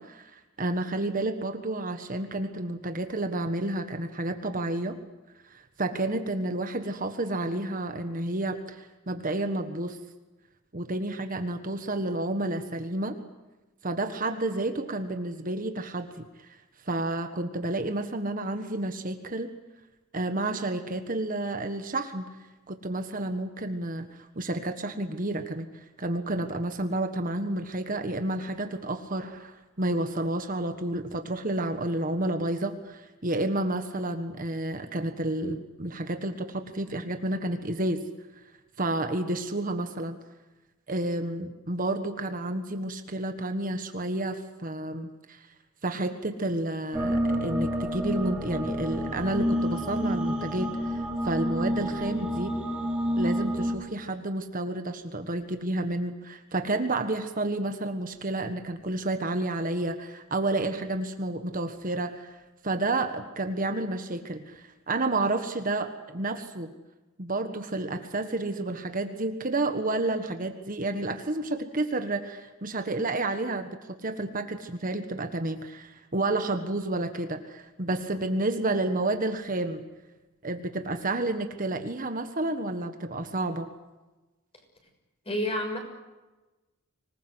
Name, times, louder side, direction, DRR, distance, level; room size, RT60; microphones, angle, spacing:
voice 1, 0.0-5.0 5.5-10.0 10.7-13.2 13.8-16.6 16.9-19.5 20.1-22.2 22.7-24.1 24.3-38.0 38.8-40.2 40.9-45.5 45.8-52.5 53.2-62.4 62.6-66.7 67.2-79.8 80.4-83.7, right 2 dB, 40° right, 7 dB, 1.5 m, -30 dB
sound 1, 46.9-53.7, equal, 5° right, 6.2 m, -29 dB
voice 2, 85.2-85.8, left 1 dB, 30° left, 3 dB, 6.6 m, -28 dB
25.5 x 20.0 x 8.0 m, 1.1 s
head